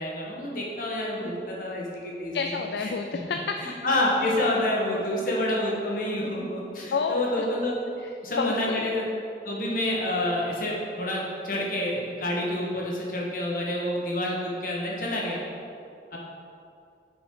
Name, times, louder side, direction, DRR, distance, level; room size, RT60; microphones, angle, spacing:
voice 1, 0.0-2.5 2.8-2.9 3.6-7.7 8.2-9.0 9.4-15.4 16.1-16.2, left 1 dB, 50° left, -3 dB, 1.4 m, -28 dB
voice 2, 2.3-3.6 6.9-7.4 8.0-8.1 8.4-8.9, left 5 dB, 65° left, 5 dB, 0.3 m, -29 dB
6.0 x 5.2 x 5.3 m, 2.5 s
head